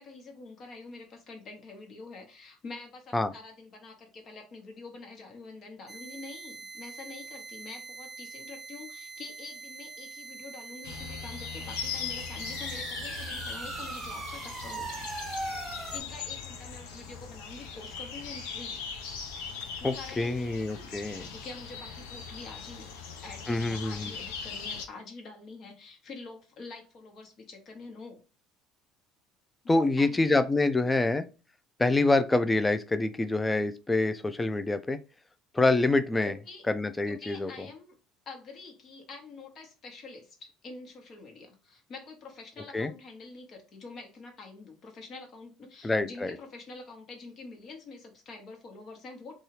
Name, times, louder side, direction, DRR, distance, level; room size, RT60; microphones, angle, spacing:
voice 1, 0.0-15.1 15.9-18.8 19.8-22.9 23.2-28.2 29.6-31.1 36.2-36.7 37.0-37.9 38.3-49.4, left 3 dB, 50° left, 2 dB, 1.1 m, -46 dB
sound 1, 5.9-16.0, right 3 dB, 25° right, 0.7 m, -41 dB
sound 2, 10.8-24.8, left 6 dB, 75° left, 0.5 m, -40 dB
voice 2, 19.8-21.2 23.5-24.1 29.7-31.2 31.8-35.0 35.5-36.4 36.7-37.7 42.7-42.9 45.8-46.3, left 2 dB, 15° left, 10 dB, 0.4 m, -26 dB
2.7 x 2.4 x 3.1 m, 0.32 s
hypercardioid pair, 65°, 0 cm